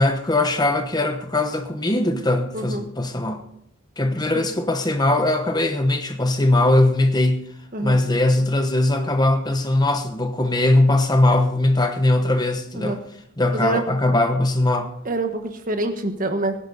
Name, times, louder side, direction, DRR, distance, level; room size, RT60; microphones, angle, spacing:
voice 1, 0.0-3.4 4.0-7.4 7.8-13.0 13.4-14.9, left 2 dB, 20° left, 7 dB, 0.9 m, -20 dB
voice 2, 2.5-2.9 4.3-4.5 7.7-8.0 12.7-13.0 13.5-13.9 15.0-16.6, right 2 dB, 40° right, 7 dB, 1.4 m, -26 dB
18.0 x 10.5 x 4.1 m, 0.73 s
head